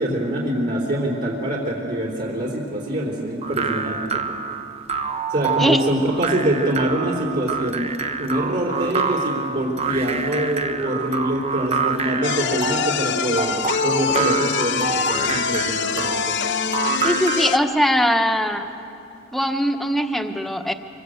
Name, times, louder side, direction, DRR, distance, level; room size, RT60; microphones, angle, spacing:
voice 1, 0.0-4.2 5.3-7.9 8.2-16.4, right 1 dB, 50° right, -2 dB, 4.0 m, -24 dB
sound 1, 3.4-17.6, right 5 dB, 30° right, 1.2 m, -27 dB
sound 2, 12.2-17.6, left 7 dB, 60° left, 0.9 m, -24 dB
voice 2, 17.0-18.7 19.3-20.7, equal, ahead, 5 dB, 1.3 m, -21 dB
25.5 x 25.0 x 8.1 m, 2.6 s
head